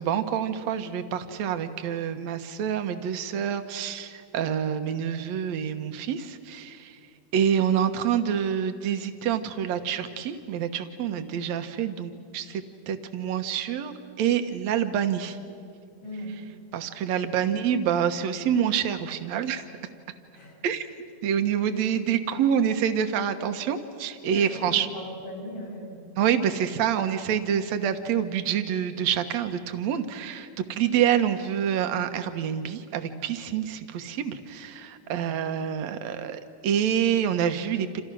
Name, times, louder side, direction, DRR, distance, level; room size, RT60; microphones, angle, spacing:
voice 1, 0.0-7.0 7.3-15.4 16.7-19.6 20.6-20.9 21.2-24.9 26.2-38.0, right 8 dB, 65° right, 8 dB, 2.2 m, -27 dB
voice 2, 16.0-16.4 20.3-20.6 24.3-26.0 35.0-35.3, equal, 80° left, -2 dB, 7.9 m, -39 dB
29.0 x 28.0 x 6.2 m, 2.3 s
omnidirectional pair, 3.8 m